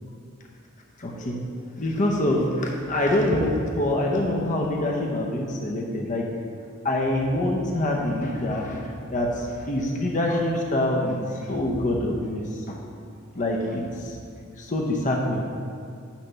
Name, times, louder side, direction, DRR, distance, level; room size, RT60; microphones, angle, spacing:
voice 1, 1.0-6.4 6.8-12.8 13.3-14.2 14.6-15.5, left 1 dB, 35° left, 0 dB, 0.8 m, -25 dB
10.0 x 3.4 x 6.7 m, 2.4 s
head